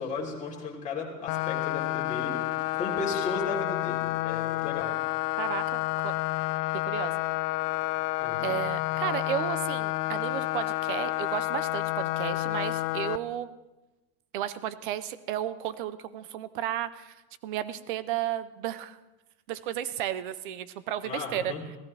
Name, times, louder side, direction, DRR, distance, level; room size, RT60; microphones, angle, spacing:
voice 1, 0.0-2.3 2.7-4.9 8.2-8.6 21.0-21.6, left 4 dB, 15° left, -4 dB, 3.1 m, -35 dB
sound 1, 1.3-13.2, left 18 dB, 80° left, 0.7 m, -30 dB
voice 2, 5.4-6.1 6.7-7.2 8.4-13.5 14.3-17.2 17.4-19.0 19.5-21.5, right 11 dB, 35° right, 15 dB, 0.4 m, -33 dB
26.0 x 17.0 x 3.3 m, 1.1 s
supercardioid pair, 175°, 48 cm